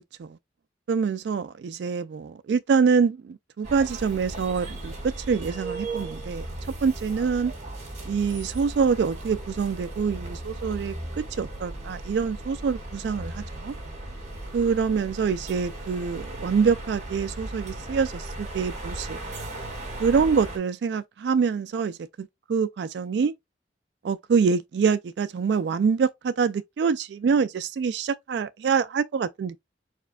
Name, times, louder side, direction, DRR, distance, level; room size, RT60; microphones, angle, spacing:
voice 1, 0.9-6.5 6.8-7.5 8.1-11.0 11.4-13.7 14.5-19.2 20.0-23.3 24.0-29.6, right 5 dB, 70° right, 0.3 m, -25 dB
sound 1, 3.6-20.6, right 2 dB, 40° right, 2.3 m, -37 dB
4.8 x 4.2 x 2.3 m
head